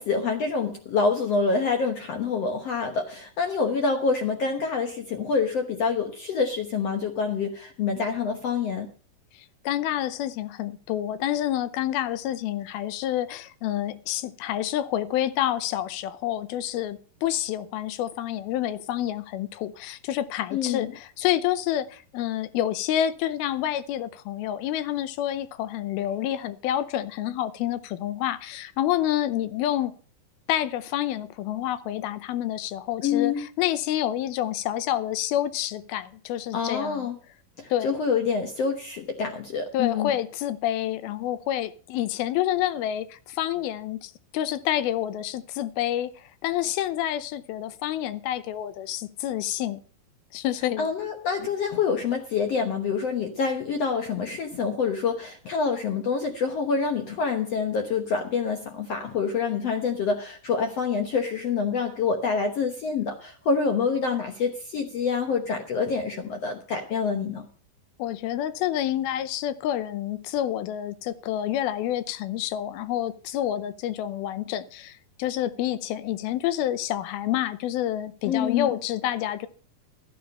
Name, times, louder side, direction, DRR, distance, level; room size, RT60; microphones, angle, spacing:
voice 1, 0.0-8.9 20.5-20.9 33.0-33.4 36.5-37.2 37.6-40.1 50.8-67.5 78.2-78.7, left 5 dB, 65° left, 1.6 m, -26 dB
voice 2, 9.3-29.9 30.5-37.1 37.7-38.0 39.7-49.8 50.3-50.9 68.0-79.5, left 12 dB, 85° left, 2.7 m, -28 dB
13.0 x 9.4 x 5.4 m
omnidirectional pair, 4.3 m